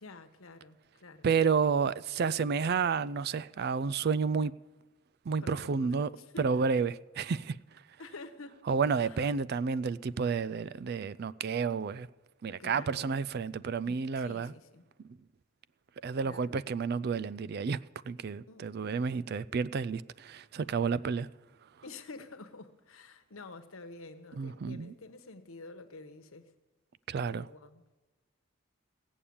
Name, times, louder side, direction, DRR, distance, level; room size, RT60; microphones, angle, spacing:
voice 1, 0.0-1.3 5.4-6.7 8.0-8.6 8.9-9.3 12.6-13.2 13.9-14.8 16.2-16.6 18.5-19.4 21.8-26.5 27.1-27.8, left 3 dB, 75° left, 1.1 m, -49 dB
voice 2, 1.2-4.5 5.3-6.1 6.4-7.6 8.7-12.1 12.4-14.5 16.0-17.8 18.1-21.3 24.4-24.9 27.1-27.5, right 5 dB, 50° right, 0.3 m, -30 dB
16.5 x 7.0 x 8.6 m
head